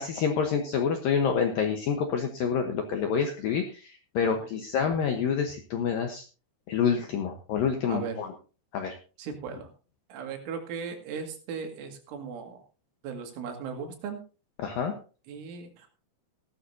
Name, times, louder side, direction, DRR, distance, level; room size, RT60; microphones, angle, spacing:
voice 1, 0.0-6.2 6.7-8.3 8.7-9.0 14.6-14.9, left 6 dB, 75° left, 4 dB, 2.1 m, -27 dB
voice 2, 9.2-9.7 10.1-12.6 13.0-14.2 15.3-15.9, right 6 dB, 85° right, 4 dB, 4.5 m, -37 dB
16.0 x 12.5 x 2.7 m, 0.35 s
omnidirectional pair, 5.5 m